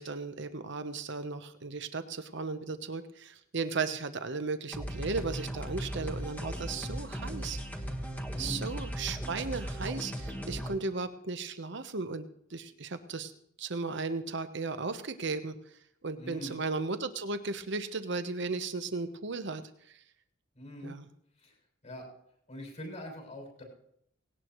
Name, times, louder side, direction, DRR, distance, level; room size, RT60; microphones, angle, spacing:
voice 1, 0.0-7.6 8.4-13.3 13.6-15.6 16.0-19.6 20.8-21.1, right 4 dB, 60° right, 10 dB, 1.0 m, -35 dB
sound 1, 4.7-10.7, equal, 10° left, 1.6 m, -37 dB
voice 2, 8.3-8.7 16.2-16.6 20.6-21.0 21.4-21.5 21.8-22.0 22.5-23.6, equal, 35° left, 0 dB, 6.8 m, -43 dB
18.5 x 17.5 x 3.1 m, 0.72 s
head